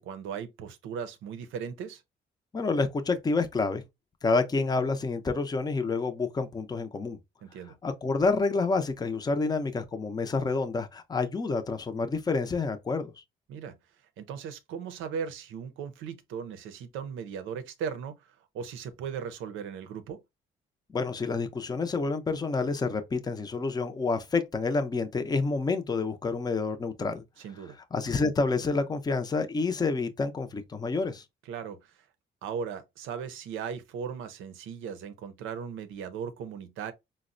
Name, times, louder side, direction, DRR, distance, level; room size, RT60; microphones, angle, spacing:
voice 1, 0.0-2.0 7.4-7.7 13.5-13.8 14.2-20.2 27.4-27.8 31.5-32.0 32.4-36.9, right 7 dB, 90° right, 0.6 m, -37 dB
voice 2, 2.5-3.8 4.2-7.2 7.8-13.1 20.9-27.2 27.9-31.2, left 3 dB, 20° left, 0.5 m, -28 dB
4.0 x 2.1 x 2.5 m
cardioid pair, 90°, 20 cm